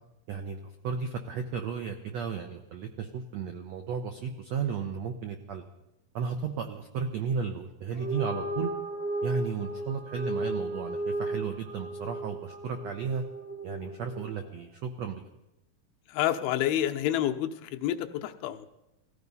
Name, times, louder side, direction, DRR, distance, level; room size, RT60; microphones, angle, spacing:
voice 1, 0.3-5.6 6.1-8.7 9.2-13.2 13.6-15.2, right 6 dB, 80° right, 5 dB, 1.5 m, -34 dB
sound 1, 7.9-14.5, right 1 dB, 65° left, 0.4 m, -35 dB
voice 2, 16.1-18.7, left 12 dB, 85° left, 6 dB, 2.6 m, -28 dB
18.0 x 15.0 x 5.4 m, 0.90 s
omnidirectional pair, 4.4 m